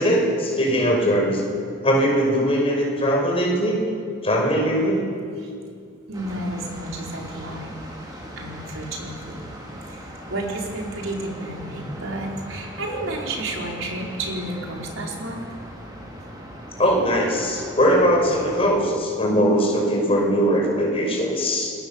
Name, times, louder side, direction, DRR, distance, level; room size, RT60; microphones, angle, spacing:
voice 1, 0.0-1.4 1.8-3.8 4.2-5.0 16.8-21.7, equal, 30° left, 0 dB, 5.8 m, -20 dB
sound 1, 6.1-18.7, equal, 20° right, 4.2 m, -39 dB
voice 2, 6.1-7.7 8.1-15.4, right 1 dB, 75° right, -1 dB, 4.8 m, -32 dB
28.5 x 21.0 x 7.4 m, 2.3 s
head